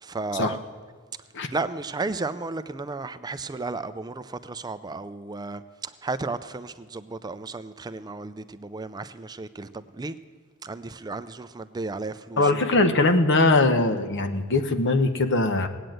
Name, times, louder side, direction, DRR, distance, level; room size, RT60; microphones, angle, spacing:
voice 1, 0.0-0.6 1.5-10.2 10.6-12.9, right 3 dB, 20° right, 0.4 m, -34 dB
voice 2, 12.4-15.7, left 2 dB, 55° left, 1.0 m, -21 dB
18.0 x 9.0 x 7.8 m
head